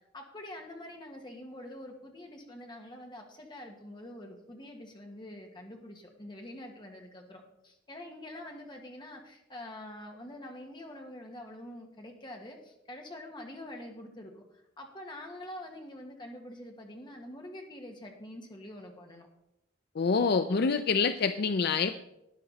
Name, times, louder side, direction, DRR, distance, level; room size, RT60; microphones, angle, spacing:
voice 1, 0.1-19.3, left 1 dB, 25° left, 2 dB, 1.7 m, -46 dB
voice 2, 20.0-21.9, left 5 dB, 60° left, 10 dB, 0.5 m, -26 dB
12.5 x 9.8 x 4.0 m, 0.86 s
head